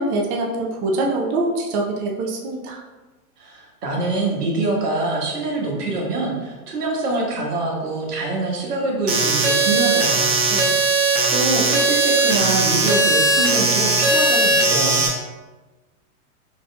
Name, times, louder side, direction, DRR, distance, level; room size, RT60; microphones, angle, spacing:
voice 1, 0.0-2.8, right 2 dB, 30° right, 0 dB, 0.5 m, -24 dB
voice 2, 3.4-15.0, right 2 dB, 85° right, -1 dB, 1.5 m, -25 dB
sound 1, 9.1-15.1, right 2 dB, 45° right, 1.4 m, -18 dB
4.9 x 4.1 x 2.3 m, 1.2 s
hypercardioid pair, 125°, 46 cm